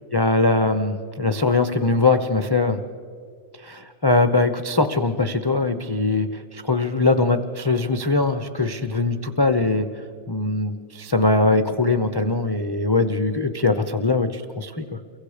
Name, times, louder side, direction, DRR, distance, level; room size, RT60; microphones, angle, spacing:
voice 1, 0.1-2.8 3.6-9.9 10.3-14.8, left 3 dB, 25° left, 7 dB, 0.5 m, -21 dB
29.5 x 23.0 x 5.1 m, 2.2 s
omnidirectional pair, 1.9 m